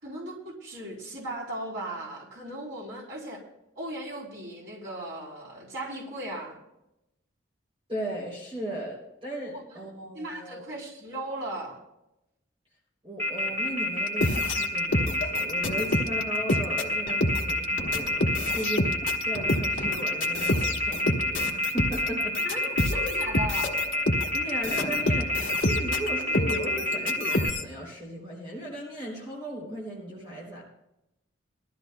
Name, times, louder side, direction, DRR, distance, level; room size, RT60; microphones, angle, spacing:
voice 1, 0.0-3.4 3.8-6.6 10.1-11.8 22.4-23.8, right 1 dB, 65° right, -3 dB, 3.6 m, -37 dB
voice 2, 7.9-10.6 13.0-22.4 24.3-30.6, right 1 dB, 25° right, -3 dB, 3.2 m, -37 dB
Telephone, 13.2-27.5, left 1 dB, 10° left, 2.1 m, -27 dB
sound 1, 14.1-27.6, left 1 dB, 70° left, 1.2 m, -28 dB
20.5 x 13.5 x 2.2 m, 0.87 s
head